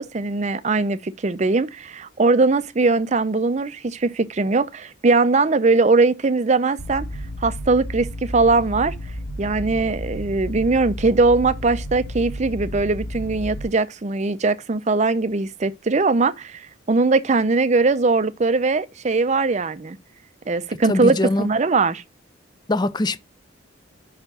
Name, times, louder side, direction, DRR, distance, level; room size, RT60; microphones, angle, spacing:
voice 1, 0.0-7.1 7.4-8.9 9.4-20.0 20.5-22.0, right 3 dB, 35° right, 0.5 m, -20 dB
sound 1, 6.8-13.6, equal, 85° left, 3.7 m, -32 dB
voice 2, 20.9-21.5 22.7-23.2, left 2 dB, 20° left, 0.4 m, -22 dB
5.8 x 4.5 x 5.3 m
head